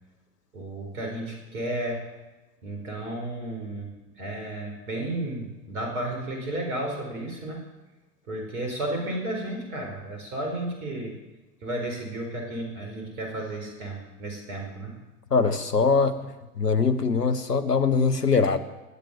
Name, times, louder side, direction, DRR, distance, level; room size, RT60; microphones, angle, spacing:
voice 1, 0.5-2.0 2.6-7.6 8.3-11.2 11.6-15.0, right 1 dB, 65° right, 3 dB, 4.6 m, -33 dB
voice 2, 15.3-16.2 16.6-18.6, left 4 dB, 85° left, 11 dB, 1.2 m, -22 dB
20.0 x 9.2 x 7.1 m, 1.1 s
figure-of-eight pair, 80°, 46 cm